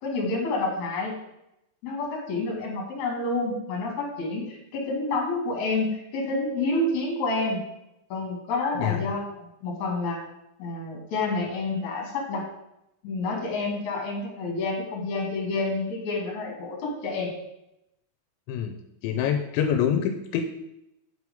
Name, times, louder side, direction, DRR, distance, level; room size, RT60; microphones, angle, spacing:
voice 1, 0.0-1.1 1.8-7.6 8.1-10.2 10.6-12.4 13.0-17.3, left 2 dB, 50° left, 0 dB, 2.6 m, -29 dB
voice 2, 19.0-20.4, left 8 dB, 85° left, 6 dB, 2.9 m, -25 dB
7.5 x 4.7 x 5.2 m, 0.85 s
omnidirectional pair, 5.3 m